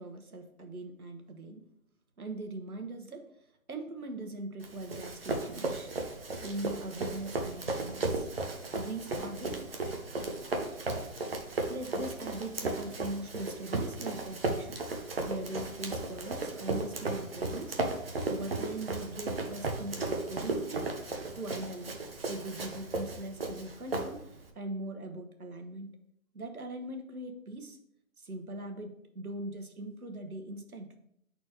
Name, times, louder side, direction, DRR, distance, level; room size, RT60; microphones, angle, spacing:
voice 1, 0.0-1.6 2.2-3.3 3.7-5.9 6.4-8.3 8.7-9.6 11.7-14.8 15.2-18.0 18.3-20.9 21.3-22.0 22.3-24.3 24.5-25.9 26.3-27.8 28.2-31.0, right 2 dB, 90° right, 5 dB, 1.4 m, -41 dB
Run, 4.6-24.5, right 2 dB, 45° right, 0.9 m, -35 dB
9.6 x 4.3 x 3.0 m, 0.75 s
figure-of-eight pair, 165°, 42 cm